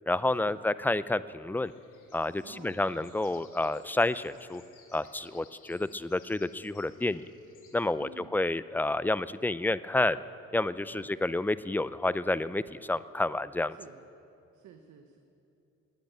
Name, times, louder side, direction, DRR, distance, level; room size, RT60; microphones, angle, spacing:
voice 1, 0.1-1.7 2.1-4.6 4.9-7.2 7.7-10.2 10.5-13.8, left 2 dB, 5° left, 16 dB, 0.4 m, -29 dB
sound 1, 1.6-7.7, left 6 dB, 90° left, 2.4 m, -60 dB
voice 2, 2.4-2.8 8.0-8.3 10.9-11.1 13.7-14.0 14.5-15.2, right 7 dB, 75° right, 5 dB, 1.1 m, -51 dB
19.0 x 8.0 x 9.1 m, 2.8 s
cardioid pair, 90°, 30 cm